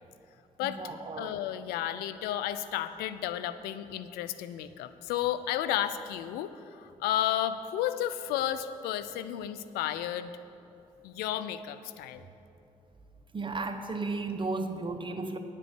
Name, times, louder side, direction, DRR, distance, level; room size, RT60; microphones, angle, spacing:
voice 1, 0.6-1.4 13.3-15.4, right 3 dB, 30° right, 7 dB, 0.9 m, -34 dB
voice 2, 1.2-10.3 11.0-12.2, left 11 dB, 85° left, 13 dB, 0.4 m, -32 dB
9.8 x 5.4 x 8.2 m, 2.8 s
supercardioid pair, 55°, 16 cm